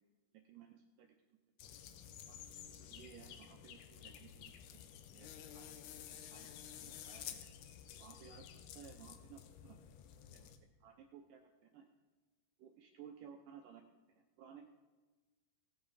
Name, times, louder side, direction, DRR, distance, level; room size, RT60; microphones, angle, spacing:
voice 1, 0.5-1.1 2.3-4.5 4.8-5.8 6.3-7.4 7.9-9.9 10.3-10.5 10.8-11.9 12.6-13.8 14.2-14.7, right 8 dB, 80° right, 5 dB, 1.9 m, -58 dB
sound 1, 1.6-10.6, left 9 dB, 80° left, 2.8 m, -52 dB
19.0 x 7.4 x 4.9 m, 1.2 s
omnidirectional pair, 4.7 m